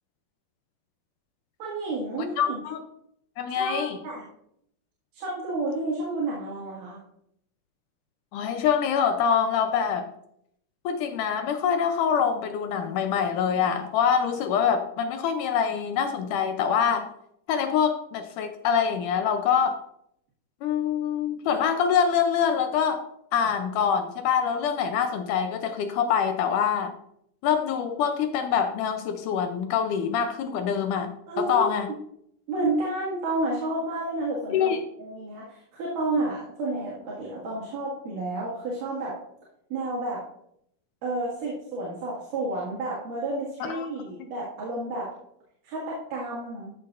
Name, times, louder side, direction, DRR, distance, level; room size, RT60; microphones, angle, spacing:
voice 1, 1.6-2.6 3.5-4.2 5.1-7.0 31.3-31.8 32.5-39.2 39.7-40.2 41.0-45.1 45.6-46.7, right 2 dB, 65° right, -6 dB, 3.4 m, -31 dB
voice 2, 2.4-2.8 3.4-4.0 8.3-10.1 10.9-17.1 17.5-19.8 20.6-23.0 23.3-26.9 27.4-31.9 34.5-34.8 43.6-43.9, left 7 dB, 80° left, 7 dB, 1.9 m, -25 dB
14.0 x 6.5 x 2.5 m, 0.73 s
omnidirectional pair, 4.2 m